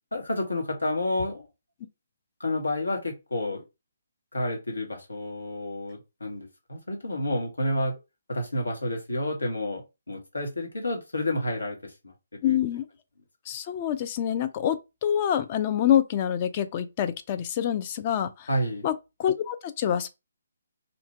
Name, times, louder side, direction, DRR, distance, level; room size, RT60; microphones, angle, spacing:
voice 1, 0.1-1.5 2.4-3.6 4.3-8.0 8.3-9.8 10.1-12.1 12.4-12.6 18.5-18.9, left 1 dB, 85° left, 1.2 m, -30 dB
voice 2, 12.4-12.8 13.5-18.5 18.8-18.9 19.2-20.1, left 10 dB, 30° left, 0.4 m, -26 dB
2.8 x 2.5 x 3.3 m
figure-of-eight pair, 140°, 0 cm